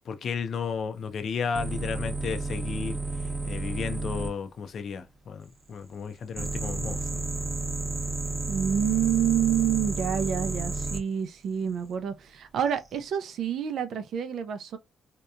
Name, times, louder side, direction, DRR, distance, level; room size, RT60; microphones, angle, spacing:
voice 1, 0.1-3.0 3.4-7.2, left 6 dB, 60° left, 0.5 m, -33 dB
sound 1, 1.5-4.3 6.4-11.0 12.7-13.0, right 3 dB, 25° right, 0.9 m, -31 dB
voice 2, 8.5-14.8, right 9 dB, 70° right, 0.5 m, -28 dB
2.8 x 2.2 x 2.4 m
cardioid pair, 90°, 0 cm